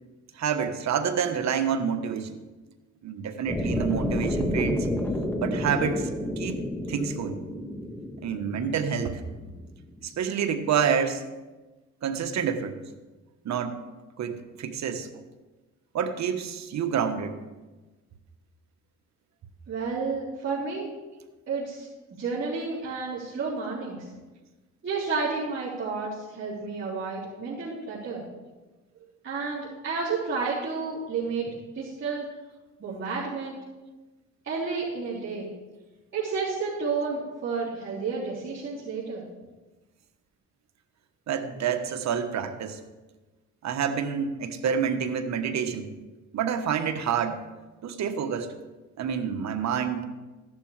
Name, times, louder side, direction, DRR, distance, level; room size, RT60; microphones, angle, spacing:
voice 1, 0.3-2.4 3.0-4.9 5.4-6.1 6.4-6.6 6.9-7.4 8.2-9.2 10.0-11.2 12.0-12.8 13.4-13.8 14.2-15.1 15.9-17.4 41.3-42.8 43.6-45.9 46.3-47.4 47.8-48.5 49.0-50.1, right 7 dB, 65° right, 8 dB, 1.2 m, -28 dB
sound 1, 3.5-9.6, left 1 dB, 5° left, 1.8 m, -30 dB
voice 2, 19.7-20.9 21.5-21.9 22.2-24.1 24.8-28.2 29.2-31.5 31.7-32.3 32.8-33.6 34.4-35.5 36.1-39.2, right 4 dB, 40° right, -10 dB, 3.7 m, -31 dB
14.5 x 11.0 x 3.3 m, 1.2 s
cardioid pair, 90°, 30 cm